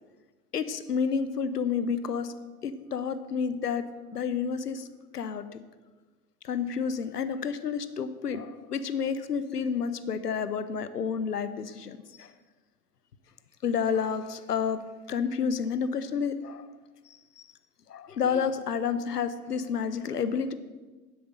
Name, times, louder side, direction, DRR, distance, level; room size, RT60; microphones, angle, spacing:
voice 1, 0.5-2.3 2.6-3.8 4.1-4.9 5.1-5.6 6.4-12.3 13.6-14.8 15.1-16.7 17.1-17.5 17.9-20.5, left 6 dB, 85° left, 12 dB, 0.7 m, -30 dB
10.5 x 7.8 x 6.6 m, 1.3 s
figure-of-eight pair, 75°, 46 cm